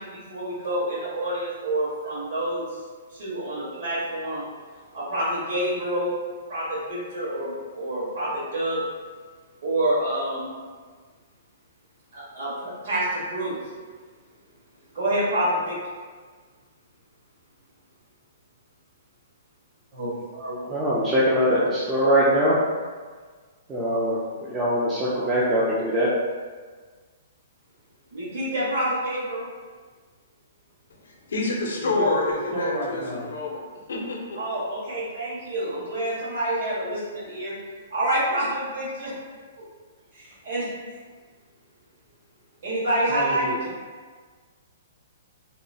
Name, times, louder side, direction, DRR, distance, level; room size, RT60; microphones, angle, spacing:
voice 1, 0.0-2.8 3.1-4.4 4.9-6.2 6.5-8.8 9.6-10.5 12.1-13.6 14.9-15.8 28.1-29.4 34.3-37.5 37.9-39.2 40.1-40.7 42.6-43.5, right 1 dB, 60° right, -9 dB, 1.4 m, -27 dB
voice 2, 19.9-20.7 31.8-33.3 43.1-43.6, equal, 40° right, -7 dB, 0.9 m, -31 dB
voice 3, 20.7-22.5 23.7-26.1, equal, 10° right, -9 dB, 0.3 m, -22 dB
voice 4, 31.3-33.6 33.9-34.6, left 2 dB, 85° left, -1 dB, 0.6 m, -27 dB
2.9 x 2.0 x 2.6 m, 1.5 s
hypercardioid pair, 165°, 0 cm